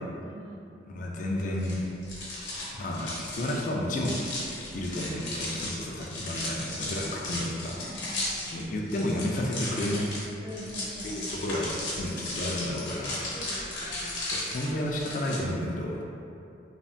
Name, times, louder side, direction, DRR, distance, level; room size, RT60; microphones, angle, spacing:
voice 1, 0.2-0.8 4.6-5.1 7.8-8.6 10.4-11.3 13.3-14.2, equal, 70° right, -11 dB, 1.3 m, -44 dB
voice 2, 0.9-1.8 2.8-4.2 4.7-7.8 8.5-10.1 11.0-11.7 12.0-13.1 14.3-16.0, left 1 dB, 45° left, -1 dB, 0.3 m, -31 dB
sound 1, 1.6-15.4, left 1 dB, 90° left, 0.8 m, -36 dB
3.2 x 2.1 x 2.5 m, 2.6 s
head